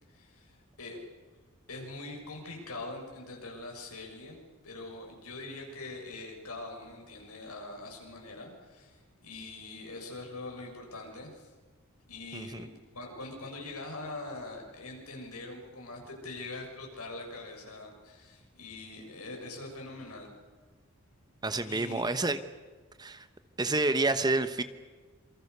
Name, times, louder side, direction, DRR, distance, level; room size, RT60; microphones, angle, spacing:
voice 1, 0.1-1.0 1.7-4.4 4.6-11.5 12.1-20.3 21.6-22.2, left 2 dB, 85° left, 1 dB, 6.8 m, -43 dB
voice 2, 12.3-12.7 21.4-22.4 23.0-23.3 23.6-24.6, right 2 dB, 20° right, 11 dB, 1.0 m, -29 dB
27.5 x 24.5 x 6.8 m, 1.4 s
head